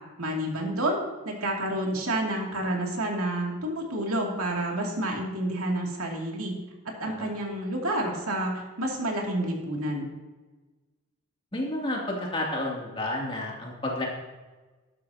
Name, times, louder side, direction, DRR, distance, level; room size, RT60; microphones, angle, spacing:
voice 1, 0.2-6.6 7.0-10.1, right 1 dB, 85° right, 0 dB, 2.5 m, -29 dB
voice 2, 11.5-14.1, left 1 dB, 25° left, -3 dB, 2.6 m, -31 dB
12.5 x 11.0 x 2.8 m, 1.3 s
head